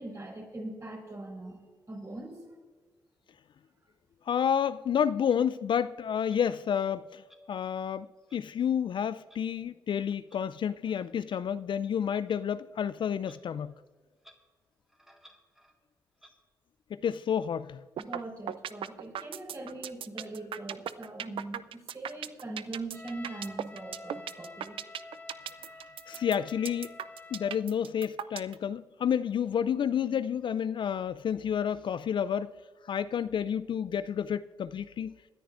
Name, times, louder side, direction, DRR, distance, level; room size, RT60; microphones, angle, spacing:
voice 1, 0.0-1.6 1.9-2.4 18.0-24.8, right 2 dB, 35° right, 4.7 m, -41 dB
voice 2, 4.3-7.2 7.5-13.7 16.9-17.8 26.1-26.9 27.3-32.5 32.9-35.1, left 8 dB, 55° left, 0.4 m, -30 dB
Clock, 5.3-5.4 6.3-6.4 7.3-7.4 8.3-8.4 9.3-9.4 10.3-10.4 11.3-11.4 12.2-12.4 13.2-13.4 13.7-13.8 14.2-14.4 14.9-15.8 16.2-16.3, equal, 5° right, 2.1 m, -58 dB
sound 1, 18.0-18.2 18.5-28.5, right 10 dB, 60° right, 0.4 m, -37 dB
Trumpet, 22.9-27.7, left 2 dB, 15° left, 2.0 m, -49 dB
25.5 x 10.0 x 2.5 m
hypercardioid pair, 45°, 10 cm